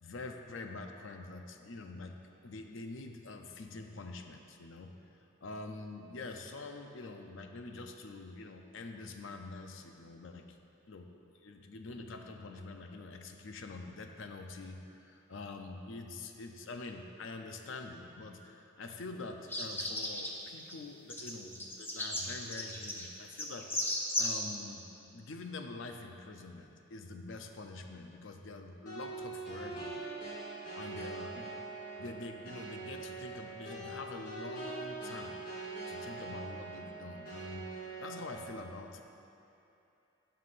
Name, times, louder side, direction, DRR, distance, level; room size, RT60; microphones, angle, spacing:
voice 1, 0.0-2.2 2.4-5.0 5.4-10.6 10.9-23.7 24.2-30.0 30.7-31.6 32.0-35.6 35.9-37.7 38.0-39.0, left 3 dB, 70° left, 4 dB, 0.6 m, -45 dB
sound 1, 19.5-20.3 20.6-20.7 21.1-24.4, left 1 dB, 10° left, 0.6 m, -35 dB
sound 2, 28.9-38.5, right 3 dB, 45° left, 2.0 m, -43 dB
16.0 x 5.8 x 2.5 m, 2.8 s
head